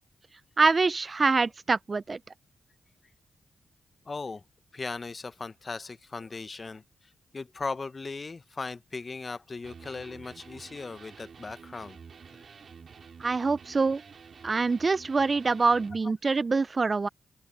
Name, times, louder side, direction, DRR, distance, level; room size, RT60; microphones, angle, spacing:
voice 1, 0.6-2.2 13.2-14.0 14.4-17.1, right 4 dB, 45° right, 0.4 m, -25 dB
voice 2, 4.1-4.4 4.7-6.8 7.3-12.0, left 4 dB, 40° left, 0.9 m, -38 dB
Electric guitar, 9.6-16.0, right 6 dB, 60° right, 3.9 m, -49 dB
open air
supercardioid pair, 45°, 0 cm